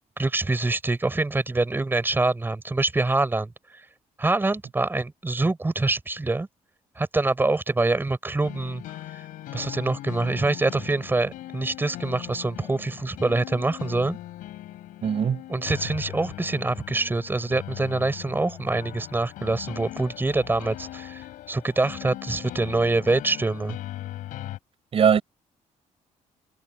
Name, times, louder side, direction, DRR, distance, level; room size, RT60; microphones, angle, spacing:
voice 1, 0.2-3.5 4.2-6.5 7.0-8.8 9.5-14.2 15.5-23.8, right 2 dB, 15° right, 5.2 m, -25 dB
sound 1, 8.4-24.6, left 14 dB, 85° left, 7.3 m, -39 dB
voice 2, 15.0-15.4 24.9-25.2, right 7 dB, 45° right, 5.8 m, -20 dB
cardioid pair, 120°, 13 cm